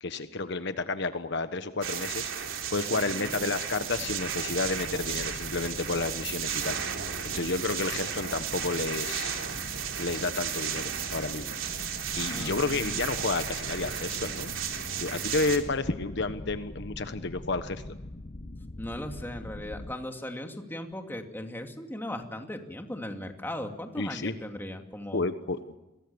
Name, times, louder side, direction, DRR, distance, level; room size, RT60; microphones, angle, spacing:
voice 1, 0.0-6.8 7.2-9.5 10.0-11.5 12.2-17.8 24.0-24.3 25.1-25.8, left 3 dB, 60° left, 10 dB, 1.3 m, -31 dB
sound 1, 1.8-15.6, right 8 dB, 85° right, 3.5 m, -34 dB
voice 2, 2.9-3.5 12.3-13.0 18.8-25.3, left 1 dB, 10° left, 4 dB, 2.6 m, -38 dB
sound 2, 3.9-19.9, left 1 dB, 35° left, 0.9 m, -43 dB
29.5 x 23.0 x 7.1 m, 0.98 s
head